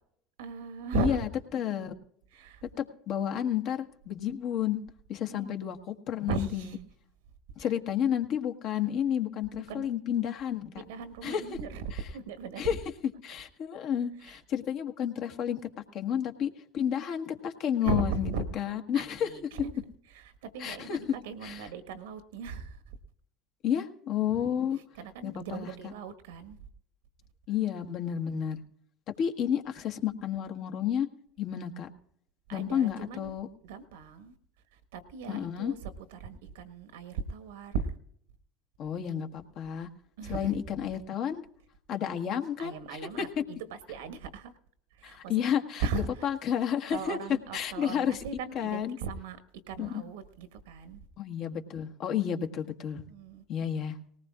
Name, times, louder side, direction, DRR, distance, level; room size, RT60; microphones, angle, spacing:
voice 1, 0.4-1.3 2.3-2.6 5.3-5.5 6.3-6.8 7.6-7.7 9.7-9.9 10.7-11.8 12.1-12.8 14.2-14.4 17.8-18.4 18.9-19.8 20.1-23.0 24.7-26.6 32.5-33.3 33.6-34.3 34.7-37.9 40.2-40.6 42.6-44.5 44.9-45.5 45.8-46.3 46.9-49.4 49.7-51.0 53.1-53.4, right 5 dB, 75° right, 11 dB, 1.4 m, -37 dB
voice 2, 0.9-1.3 1.5-1.9 2.8-4.8 5.1-6.7 7.6-10.6 11.2-11.4 12.6-12.8 13.2-15.6 15.9-19.3 20.6-21.0 21.4-21.6 23.6-24.8 25.2-25.7 27.5-28.6 29.2-31.1 31.4-31.9 32.5-33.5 35.3-35.7 38.8-39.9 40.3-41.4 41.9-42.8 43.2-43.3 45.0-47.2 47.5-48.2 48.5-49.0 49.8-50.0 51.2-53.0 53.5-54.0, left 9 dB, 50° left, 5 dB, 1.4 m, -31 dB
19.5 x 18.5 x 2.5 m, 0.68 s
hypercardioid pair, 75°, 0 cm